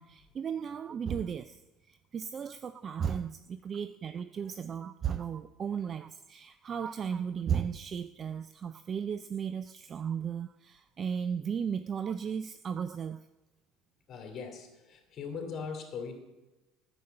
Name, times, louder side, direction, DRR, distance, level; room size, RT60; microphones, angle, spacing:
voice 1, 0.0-13.2, right 7 dB, 35° right, 12 dB, 0.4 m, -35 dB
voice 2, 14.1-16.2, left 5 dB, 45° left, 3 dB, 2.8 m, -40 dB
9.5 x 6.9 x 7.9 m, 1.1 s
supercardioid pair, 100°, 0 cm